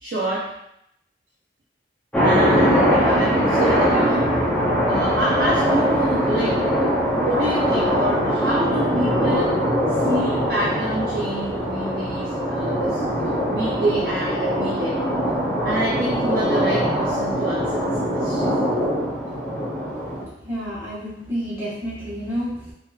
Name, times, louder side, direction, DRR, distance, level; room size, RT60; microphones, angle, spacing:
voice 1, 0.0-0.6 2.2-4.4 4.9-9.6 10.0-15.0 15.6-18.5, right 1 dB, 55° right, -5 dB, 0.6 m, -27 dB
sound 1, 2.1-20.2, equal, 5° left, 0.6 m, -22 dB
voice 2, 20.1-22.7, equal, 15° right, -11 dB, 1.1 m, -30 dB
3.7 x 2.9 x 2.3 m, 0.78 s
head